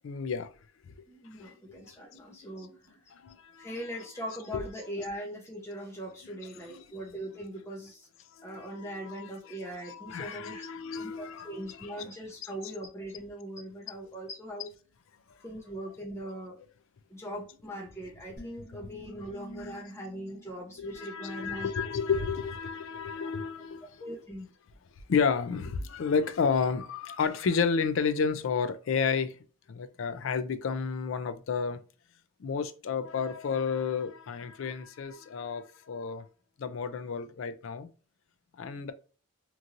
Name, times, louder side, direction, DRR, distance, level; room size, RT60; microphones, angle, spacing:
voice 1, 0.0-0.5 1.4-1.8 2.3-2.4 3.1-3.9 4.5-4.6 6.7-6.9 8.4-9.6 9.8-12.1 20.8-24.1 25.1-29.4 29.7-31.8 32.4-36.3 36.6-37.9 38.6-38.9, left 5 dB, 65° left, 0.4 m, -31 dB
voice 2, 1.1-3.0 3.6-8.1 8.4-10.7 11.0-14.7 15.4-16.6 17.1-21.9 24.0-24.5, equal, 10° left, 0.7 m, -40 dB
sound 1, 18.4-21.7, equal, 40° left, 0.8 m, -50 dB
3.0 x 2.6 x 2.4 m
head